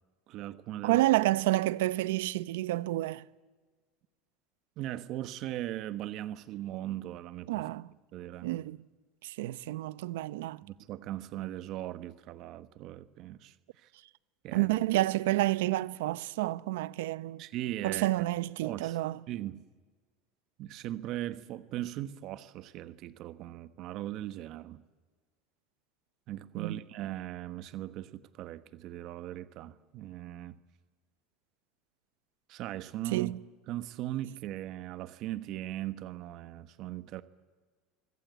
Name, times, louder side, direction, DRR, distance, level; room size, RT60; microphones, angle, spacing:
voice 1, 0.3-1.0 4.8-7.7 8.1-8.5 10.6-13.9 14.4-14.8 17.4-18.1 18.6-19.0 19.3-19.7 20.6-24.8 26.3-30.6 32.5-33.3 33.7-37.2, right 14 dB, 50° right, 1.2 m, -39 dB
voice 2, 0.8-3.3 7.5-7.9 8.4-8.8 9.2-10.6 14.5-17.4 17.8-19.2 26.6-26.8 33.1-33.4, right 17 dB, 85° right, 0.9 m, -29 dB
25.0 x 24.5 x 8.3 m
supercardioid pair, 130°, 0 cm